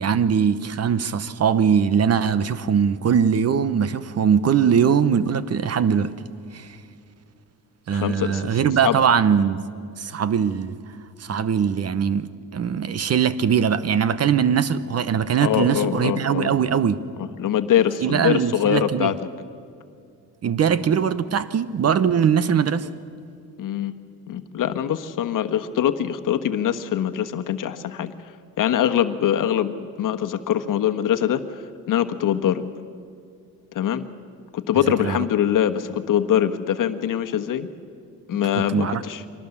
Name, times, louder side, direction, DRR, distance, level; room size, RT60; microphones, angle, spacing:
voice 1, 0.0-6.1 6.5-6.8 7.9-9.6 10.0-10.8 11.2-17.0 18.0-19.1 20.4-22.9 34.9-35.2 38.6-39.0, right 7 dB, 40° right, 0.9 m, -21 dB
voice 2, 7.9-8.5 8.8-9.0 15.4-16.5 17.4-19.2 23.6-24.0 24.3-28.1 28.6-32.6 33.7-34.1 34.5-37.7 38.3-39.2, left 10 dB, 55° left, 1.3 m, -23 dB
24.5 x 19.0 x 7.2 m
cardioid pair, 105°, 38 cm